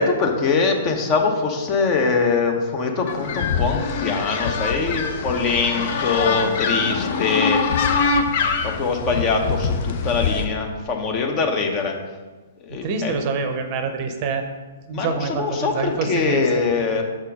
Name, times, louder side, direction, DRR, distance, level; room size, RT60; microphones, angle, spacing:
voice 1, 0.0-7.6 8.6-12.0 12.6-13.2 14.9-17.0, left 4 dB, 30° left, 3 dB, 1.0 m, -23 dB
sound 1, 3.1-10.4, left 5 dB, 50° left, 0.7 m, -24 dB
voice 2, 12.8-14.4 14.9-16.4, right 4 dB, 40° right, 7 dB, 0.7 m, -26 dB
6.2 x 4.4 x 5.3 m, 1.3 s
figure-of-eight pair, 120°, 0 cm